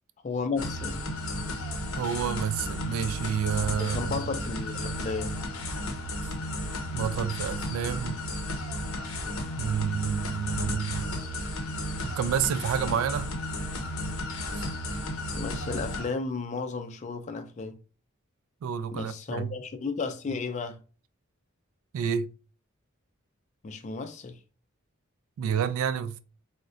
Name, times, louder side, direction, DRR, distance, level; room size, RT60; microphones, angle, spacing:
voice 1, 0.2-1.0 3.8-5.4 15.3-17.8 18.9-20.8 23.6-24.4, left 4 dB, 35° left, 0.3 m, -33 dB
sound 1, 0.6-16.1, left 1 dB, 80° left, 0.6 m, -33 dB
voice 2, 2.0-4.1 6.9-8.2 9.6-11.1 12.0-13.3 14.5-14.6 18.6-19.5 21.9-22.3 25.4-26.2, right 8 dB, 80° right, 0.3 m, -29 dB
2.3 x 2.1 x 3.7 m
head